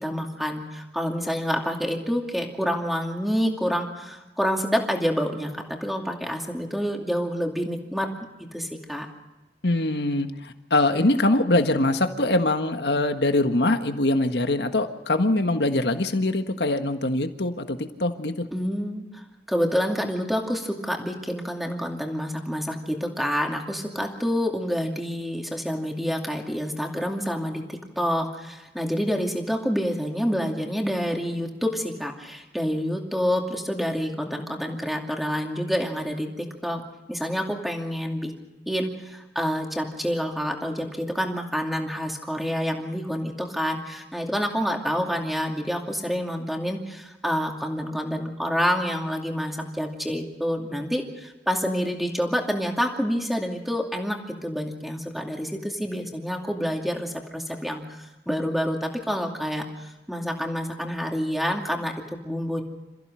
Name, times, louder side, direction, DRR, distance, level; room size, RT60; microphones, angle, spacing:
voice 1, 0.0-8.1 8.5-9.1 18.5-36.8 37.1-38.3 38.7-62.6, equal, ahead, 1 dB, 2.5 m, -28 dB
voice 2, 9.6-18.3, left 2 dB, 75° left, 7 dB, 1.6 m, -23 dB
28.0 x 15.0 x 6.4 m, 1.1 s
head